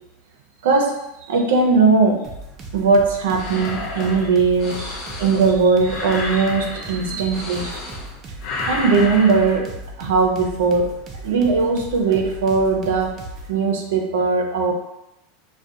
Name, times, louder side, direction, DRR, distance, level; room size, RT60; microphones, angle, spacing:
voice 1, 0.6-2.3 2.7-7.8 8.7-10.9 11.2-13.2 13.5-14.7, right 4 dB, 85° right, 2 dB, 0.4 m, -19 dB
sound 1, 2.2-13.5, right 1 dB, 30° right, 0.4 m, -37 dB
heavy breathing, 3.4-8.1 8.4-9.6, left 3 dB, 45° left, 0.4 m, -31 dB
2.3 x 2.1 x 2.6 m, 0.88 s
supercardioid pair, 135°, 0 cm